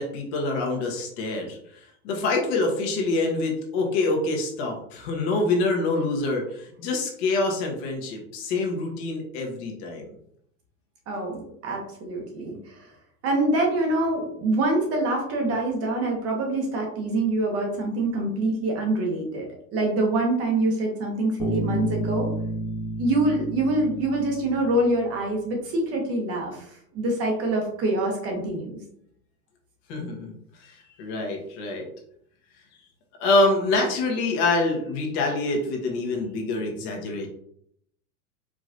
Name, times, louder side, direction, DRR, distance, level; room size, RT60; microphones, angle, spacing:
voice 1, 0.0-10.1 29.9-30.3 30.6-31.9 33.2-37.3, left 2 dB, 45° left, 1 dB, 1.2 m, -26 dB
voice 2, 11.1-12.8 13.2-19.5 19.7-22.3 23.0-28.8, right 2 dB, 30° right, 1 dB, 1.1 m, -25 dB
Bass guitar, 21.4-25.2, equal, 10° left, 0.3 m, -30 dB
4.8 x 3.0 x 2.5 m, 0.68 s
hypercardioid pair, 130°, 46 cm